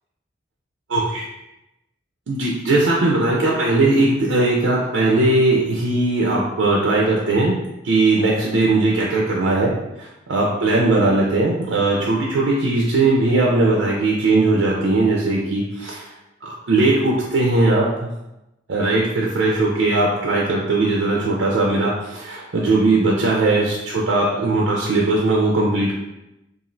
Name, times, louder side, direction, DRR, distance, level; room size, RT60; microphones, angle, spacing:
voice 1, 0.9-1.2 2.3-7.6 7.8-16.1 16.4-18.1 18.7-25.9, right 2 dB, 85° right, -3 dB, 0.5 m, -19 dB
3.0 x 2.4 x 2.5 m, 0.92 s
head